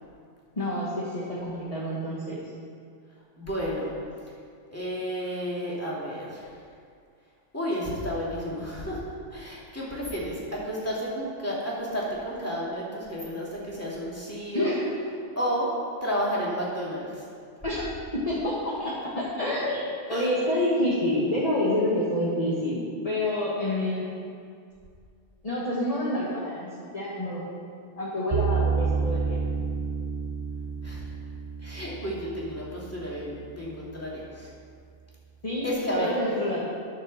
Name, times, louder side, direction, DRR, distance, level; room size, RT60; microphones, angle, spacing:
voice 1, 0.5-2.5 14.5-14.8 17.6-24.0 25.4-27.5 28.0-29.4 35.4-35.7 36.0-36.6, left 1 dB, 30° left, -7 dB, 1.7 m, -28 dB
voice 2, 3.4-3.9 4.7-6.5 7.5-9.0 9.3-10.4 10.6-14.8 15.4-15.7 16.0-17.2 20.1-20.3 30.8-31.0 31.6-34.5 35.6-36.1, equal, 10° left, -6 dB, 2.6 m, -31 dB
sound 1, 28.3-33.4, right 5 dB, 65° right, 0.3 m, -30 dB
11.5 x 6.6 x 6.6 m, 2.2 s
omnidirectional pair, 1.3 m